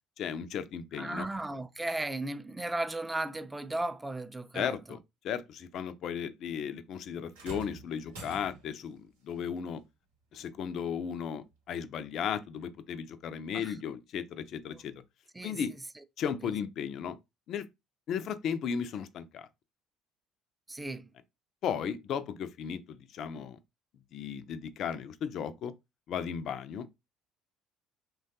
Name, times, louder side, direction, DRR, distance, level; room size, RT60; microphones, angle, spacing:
voice 1, 0.2-1.3 4.5-5.0 5.2-9.8 10.3-14.9 15.4-15.7 16.2-17.2 17.5-17.7 18.1-19.5 21.6-23.6 24.1-25.7 26.1-26.9, left 7 dB, 60° left, 0.3 m, -35 dB
voice 2, 0.9-5.0 13.5-13.8 14.7-14.8 15.3-15.6 16.0-16.5 20.7-21.1, right 2 dB, 15° right, 0.4 m, -36 dB
sound 1, 7.3-8.9 10.3-10.5 11.4-11.5, right 3 dB, 85° right, 0.8 m, -46 dB
3.0 x 2.2 x 2.8 m
hypercardioid pair, 60°, 0 cm